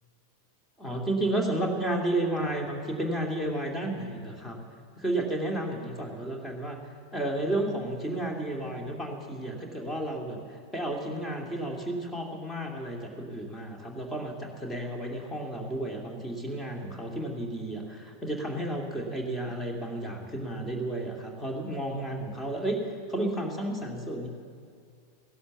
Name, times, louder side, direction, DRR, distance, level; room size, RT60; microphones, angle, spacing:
voice 1, 0.8-4.6 5.0-6.8 7.1-22.8 23.1-24.3, right 1 dB, 10° left, 1 dB, 2.4 m, -32 dB
16.5 x 11.5 x 7.2 m, 2.2 s
figure-of-eight pair, 90°, 0 cm